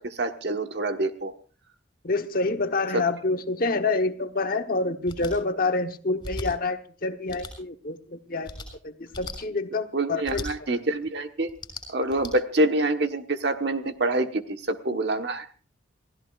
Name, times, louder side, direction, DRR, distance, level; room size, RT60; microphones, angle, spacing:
voice 1, 0.0-1.3 2.9-3.0 9.9-11.5 11.9-15.6, right 2 dB, 60° right, 6 dB, 1.4 m, -26 dB
voice 2, 2.0-8.5 8.8-10.7, left 3 dB, 50° left, 7 dB, 1.1 m, -27 dB
sound 1, 5.0-5.3 6.2-6.5 7.3-7.5 8.4-8.7 9.1-9.4 10.2-10.5 11.5-12.3, left 2 dB, 25° left, 6.3 m, -37 dB
28.5 x 16.0 x 2.5 m, 0.38 s
head